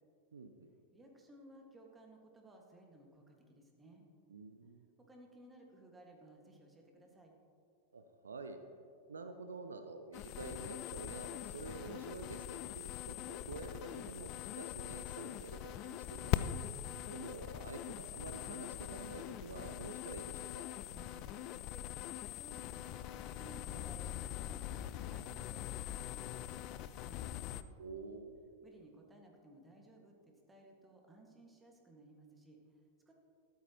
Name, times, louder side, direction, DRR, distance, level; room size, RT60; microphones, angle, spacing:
voice 1, 0.3-0.7 4.3-4.8 7.9-8.6 9.1-16.5 17.1-20.7 27.8-28.3, right 3 dB, 70° right, 7 dB, 0.6 m, -48 dB
voice 2, 0.9-4.0 5.0-7.3 20.9-27.5 28.6-33.1, right 2 dB, 10° right, 1 dB, 1.8 m, -59 dB
sound 1, 10.1-27.6, left 12 dB, 40° left, 0.4 m, -42 dB
13.0 x 12.0 x 3.0 m, 2.4 s
figure-of-eight pair, 90°, 0 cm